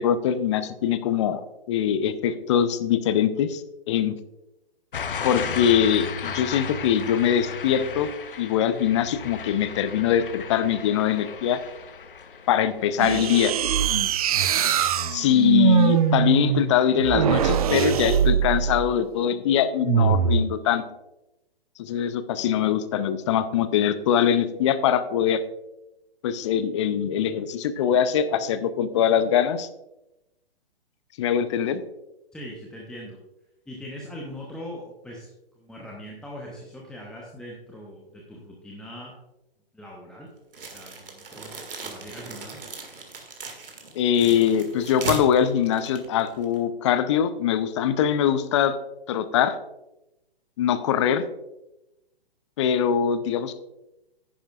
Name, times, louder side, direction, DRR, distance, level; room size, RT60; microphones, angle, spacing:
voice 1, 0.0-1.4 1.7-4.2 5.2-8.1 8.4-11.6 12.5-13.5 15.1-20.8 21.8-25.4 26.2-29.7 31.2-31.8 43.9-48.8 49.1-49.6 50.6-51.2 52.6-53.5, left 9 dB, 30° left, 13 dB, 0.6 m, -22 dB
sound 1, 4.9-15.8 16.2-16.6, left 6 dB, 60° left, 1.0 m, -36 dB
sound 2, 13.0-18.9 19.8-20.5, right 8 dB, 40° right, 0.6 m, -22 dB
voice 2, 32.3-33.2 33.7-35.3 35.6-39.1 39.7-40.3 40.7-41.6 41.8-42.6, equal, ahead, -3 dB, 1.0 m, -41 dB
sound 3, 40.5-46.6, right 4 dB, 65° right, 2.0 m, -37 dB
10.0 x 10.0 x 2.4 m, 0.94 s
figure-of-eight pair, 125°, 30 cm